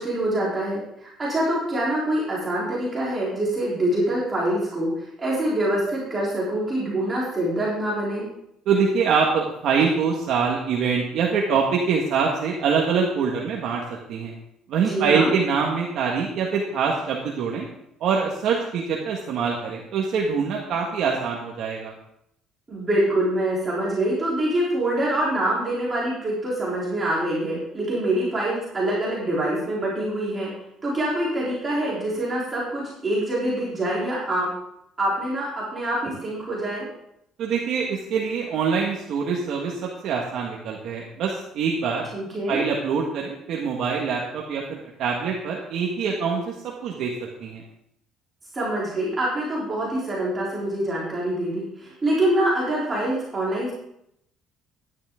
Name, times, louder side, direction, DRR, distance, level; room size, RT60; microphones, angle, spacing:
voice 1, 0.0-8.3 14.8-15.3 22.7-30.5 30.8-34.5 35.0-36.9 42.1-42.6 48.5-53.7, right 1 dB, 20° right, -6 dB, 3.6 m, -25 dB
voice 2, 8.6-13.8 14.1-14.3 14.7-17.7 18.0-21.9 37.4-42.1 42.5-46.5 46.8-47.1 47.4-47.6, right 5 dB, 60° right, -1 dB, 1.6 m, -24 dB
11.5 x 10.5 x 3.8 m, 0.76 s
cardioid pair, 145°, 0 cm